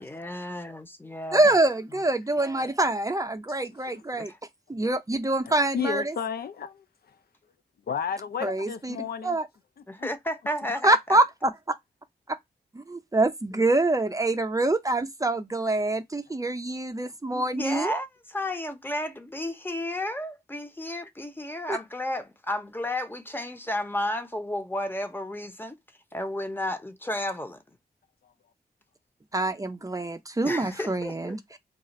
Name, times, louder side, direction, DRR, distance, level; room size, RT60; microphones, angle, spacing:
voice 1, 0.0-1.5 4.2-4.3 9.9-11.0 17.3-25.8 26.1-27.6 30.4-31.4, left 1 dB, 10° left, 0.8 m, -32 dB
voice 2, 1.3-4.3 4.7-6.2 8.4-9.5 10.8-11.5 12.7-18.0 21.7-21.8 29.3-31.6, right 2 dB, 20° right, 0.5 m, -25 dB
voice 3, 5.7-6.8 7.9-9.4 10.0-10.1, left 7 dB, 65° left, 0.4 m, -31 dB
2.4 x 2.4 x 4.0 m
cardioid pair, 60°, 17 cm